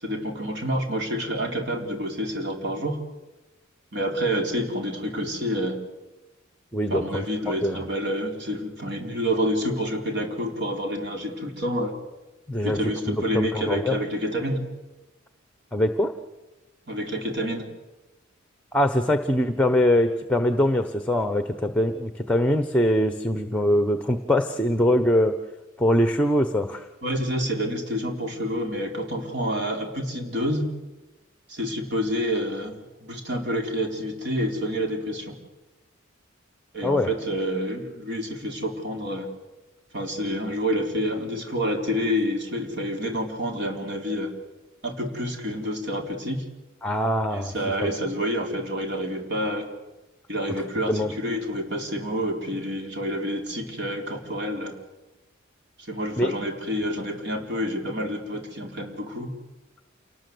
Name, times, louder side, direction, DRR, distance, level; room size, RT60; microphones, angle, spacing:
voice 1, 0.0-3.0 3.9-5.8 6.9-11.9 12.6-14.6 16.9-17.6 27.0-30.7 31.5-32.7 33.0-35.3 36.7-39.3 39.9-44.3 44.8-46.4 47.3-49.7 50.3-54.7 55.9-59.3, equal, 60° right, 2 dB, 4.4 m, -28 dB
voice 2, 6.7-7.2 7.6-7.8 12.5-12.8 13.1-14.0 15.7-16.1 18.7-25.4 25.8-26.8 36.8-37.1 46.8-47.5 47.8-47.9 50.9-51.1 56.2-56.3, left 1 dB, 5° left, 8 dB, 1.1 m, -22 dB
28.0 x 19.5 x 8.0 m, 1.1 s
head